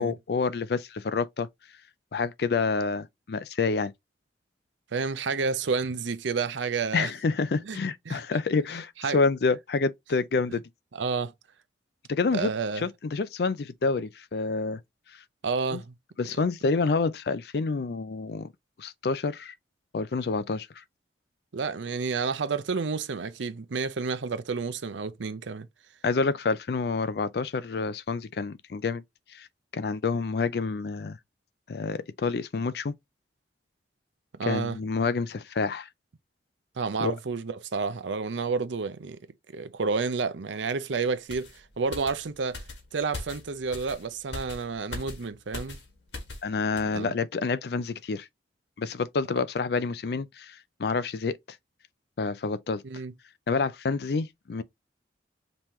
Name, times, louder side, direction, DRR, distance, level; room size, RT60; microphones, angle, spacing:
voice 1, 0.0-1.5 2.1-3.9 6.9-10.6 12.1-14.8 15.7-15.8 16.2-18.5 18.8-19.5 19.9-20.8 26.0-29.0 29.3-29.5 29.7-31.2 31.7-32.9 34.4-35.9 37.0-37.1 46.4-48.3 48.8-51.4 52.2-52.8 53.5-54.6, left 4 dB, 60° left, 0.4 m, -28 dB
voice 2, 4.9-7.1 7.6-7.8 8.1-8.2 9.0-9.2 10.9-11.3 12.3-12.8 15.4-15.9 21.5-25.7 34.4-34.8 36.8-39.2 39.5-41.5 41.8-42.6 42.9-45.8 46.9-47.1 52.8-53.1, right 4 dB, 90° right, 0.6 m, -30 dB
sound 1, 41.3-46.5 46.8-47.0, left 2 dB, 75° left, 1.7 m, -41 dB
5.4 x 3.0 x 3.1 m
head